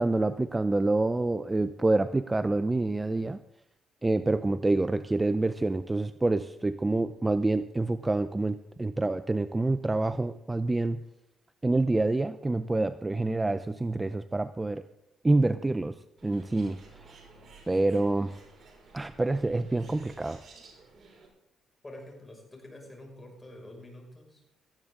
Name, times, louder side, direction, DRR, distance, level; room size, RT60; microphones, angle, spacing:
voice 1, 0.0-3.4 4.0-11.0 11.6-14.8 15.2-15.9 16.2-17.0 17.7-18.4 18.9-20.4, right 2 dB, 15° right, 12 dB, 0.5 m, -27 dB
Bird, 16.2-21.3, right 3 dB, 50° right, 5.6 m, -54 dB
voice 2, 21.8-24.4, left 1 dB, 20° left, 1 dB, 5.9 m, -47 dB
18.0 x 14.0 x 3.8 m, 0.81 s
cardioid pair, 90°, 0 cm